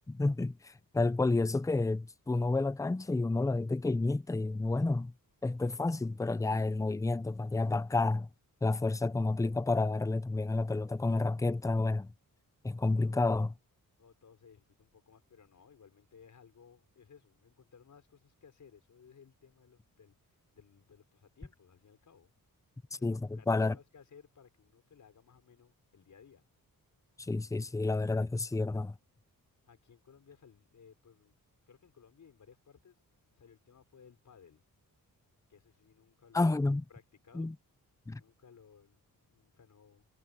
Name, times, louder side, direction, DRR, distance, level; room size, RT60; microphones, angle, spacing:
voice 1, 0.1-5.1 5.4-8.3 8.6-12.1 12.6-13.5 23.0-23.8 27.2-28.9 36.3-36.8 37.3-37.5 38.1-38.2, left 3 dB, 10° left, 0.5 m, -30 dB
voice 2, 14.0-22.3 23.0-26.5 29.7-31.4 31.7-33.0 33.3-34.6 35.5-36.6 36.9-37.5 38.2-40.1, left 6 dB, 55° left, 6.0 m, -60 dB
wide cardioid pair, 160°, 35 cm